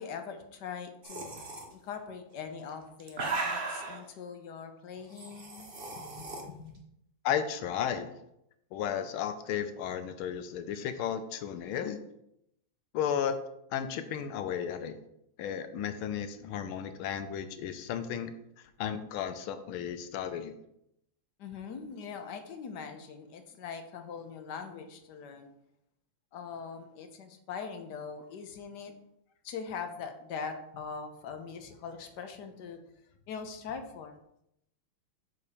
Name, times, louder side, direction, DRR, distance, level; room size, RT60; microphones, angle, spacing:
voice 1, 0.0-1.3 1.7-6.8 21.4-25.5 26.3-28.9 29.4-32.8 33.3-34.2, left 6 dB, 65° left, 7 dB, 1.2 m, -42 dB
sound 1, 1.0-1.6 2.6-4.0 5.1-6.4, right 3 dB, 35° right, 0.9 m, -36 dB
voice 2, 7.2-8.1 8.7-12.0 12.9-13.3 13.7-14.9 15.4-18.3 18.6-20.6, left 9 dB, 90° left, 9 dB, 1.5 m, -34 dB
6.9 x 4.2 x 5.0 m, 0.78 s
omnidirectional pair, 2.3 m